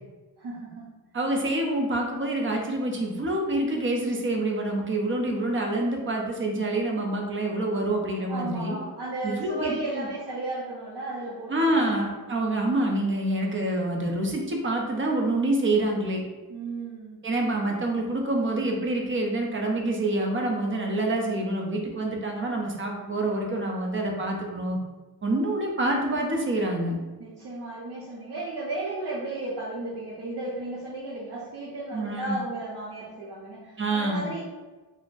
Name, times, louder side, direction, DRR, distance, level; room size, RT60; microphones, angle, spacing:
voice 1, 0.4-0.9 8.3-12.3 16.5-17.3 27.2-34.4, right 2 dB, 70° right, -7 dB, 0.7 m, -34 dB
voice 2, 1.1-8.8 9.2-10.1 11.5-16.2 17.2-24.8 25.2-27.0 31.9-32.4 33.8-34.3, right 1 dB, 30° right, 0 dB, 0.5 m, -27 dB
3.6 x 2.1 x 2.5 m, 1.2 s
wide cardioid pair, 130°, 39 cm